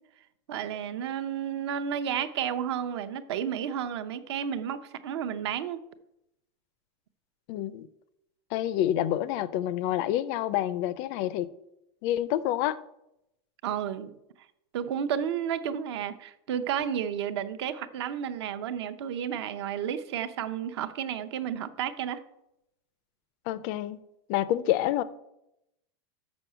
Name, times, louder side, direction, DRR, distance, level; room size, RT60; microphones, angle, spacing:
voice 1, 0.5-5.8 13.6-14.2 14.7-22.2, right 9 dB, 70° right, 0.7 m, -32 dB
voice 2, 7.5-7.9 8.5-11.5 12.0-12.8 23.5-24.0 24.3-25.0, left 12 dB, 30° left, 0.4 m, -28 dB
6.3 x 6.2 x 6.7 m
supercardioid pair, 175°, 14 cm